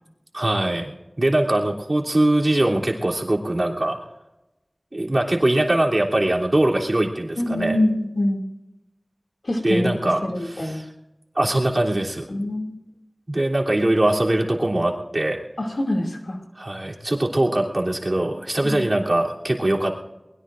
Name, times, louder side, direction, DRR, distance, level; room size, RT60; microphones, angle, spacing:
voice 1, 0.3-4.0 4.9-7.8 9.6-10.9 11.3-12.3 13.3-15.4 16.6-19.9, right 1 dB, 45° right, -2 dB, 3.2 m, -22 dB
voice 2, 7.4-8.4 9.4-10.8 12.3-12.7 15.6-16.4 18.6-18.9, left 1 dB, 80° left, 1 dB, 2.6 m, -25 dB
23.0 x 21.0 x 2.6 m, 0.98 s
wide cardioid pair, 50°, 0 cm